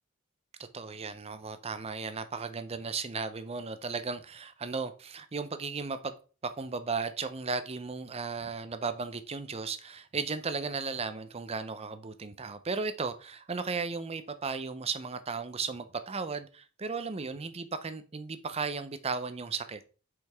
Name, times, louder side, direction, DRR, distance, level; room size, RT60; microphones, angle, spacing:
voice 1, 0.7-6.1 6.4-19.8, right 4 dB, 30° right, 0.6 m, -35 dB
6.5 x 5.2 x 3.5 m
head